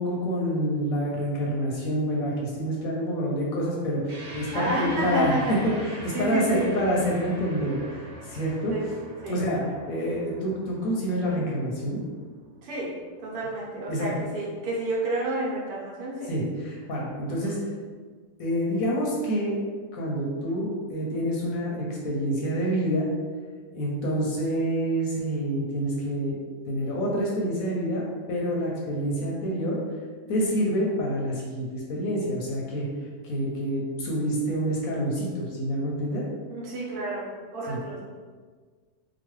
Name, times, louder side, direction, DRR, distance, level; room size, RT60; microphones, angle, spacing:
voice 1, 0.0-5.4 5.6-8.7 9.2-9.6 9.9-12.0 13.9-14.1 16.3-17.6 18.4-19.6 19.9-23.1 23.7-26.4 26.7-29.8 30.3-32.9 33.2-36.2 37.7-37.8, equal, 70° left, -3 dB, 0.9 m, -27 dB
sound 1, 4.1-12.8, right 1 dB, 55° right, 0.9 m, -43 dB
voice 2, 4.5-5.6 6.1-6.7 8.7-8.9 9.2-9.5 12.6-16.3 17.3-17.6 36.5-38.0, right 1 dB, 75° right, -4 dB, 1.2 m, -30 dB
2.9 x 2.2 x 3.0 m, 1.5 s
omnidirectional pair, 1.7 m